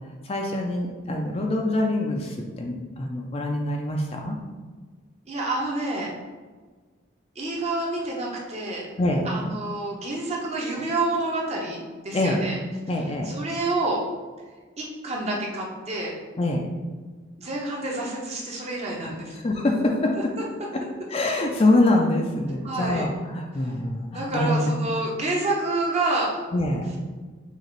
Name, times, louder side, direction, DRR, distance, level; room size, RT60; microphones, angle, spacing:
voice 1, 0.2-4.4 9.0-9.3 12.1-12.5 12.9-13.3 16.4-16.7 19.3-20.3 20.7-20.8 21.1-24.7 26.5-26.9, left 2 dB, 30° left, 1 dB, 0.4 m, -24 dB
voice 2, 5.3-6.1 7.4-8.9 9.2-12.6 13.3-14.0 14.8-16.1 17.4-19.4 22.6-23.1 24.1-26.3, right 2 dB, 30° right, -2 dB, 0.8 m, -28 dB
6.4 x 2.5 x 3.1 m, 1.4 s
head